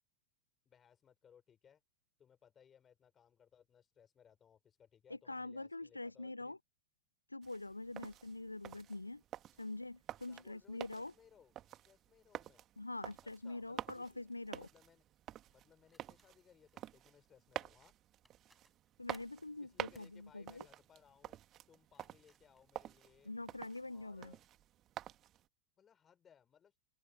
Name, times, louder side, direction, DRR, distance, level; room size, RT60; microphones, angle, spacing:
voice 1, 0.6-1.8 2.2-6.6 8.7-8.8 10.3-12.6 13.2-14.3 14.6-15.0 15.5-17.9 19.6-21.4 21.7-23.3 23.9-24.4 25.8-26.8, left 8 dB, 25° left, 6.5 m, -66 dB
voice 2, 5.1-6.6 7.3-9.2 9.6-11.1 12.8-14.7 19.0-20.7 23.2-24.3, left 2 dB, 85° left, 0.3 m, -45 dB
sound 1, 7.4-25.5, right 12 dB, 30° right, 2.0 m, -50 dB
sound 2, 15.8-16.9 17.9-18.0 18.2-19.4 19.9-20.2 21.7-23.6 24.2-24.5, right 1 dB, 5° right, 5.0 m, -72 dB
open air
figure-of-eight pair, 90°, 0 cm